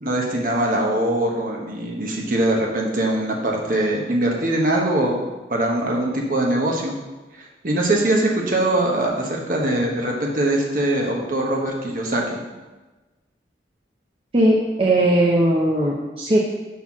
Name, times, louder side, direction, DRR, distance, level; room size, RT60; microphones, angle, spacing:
voice 1, 0.0-5.2 5.5-6.9 7.6-12.4, right 1 dB, 50° right, -1 dB, 1.1 m, -22 dB
voice 2, 14.3-16.4, right 1 dB, 30° right, -4 dB, 0.7 m, -18 dB
5.6 x 4.3 x 5.9 m, 1.2 s
head